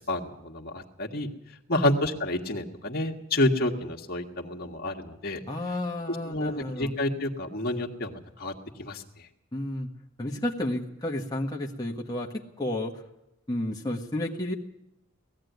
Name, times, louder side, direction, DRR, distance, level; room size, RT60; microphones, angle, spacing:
voice 1, 0.1-1.3 1.7-5.4 6.1-8.5 8.8-9.0, left 1 dB, 50° left, 1 dB, 1.8 m, -29 dB
voice 2, 5.5-6.9 9.5-9.9 10.2-12.9 13.5-14.5, left 1 dB, 20° left, -1 dB, 1.5 m, -31 dB
19.0 x 14.5 x 9.4 m, 0.84 s
head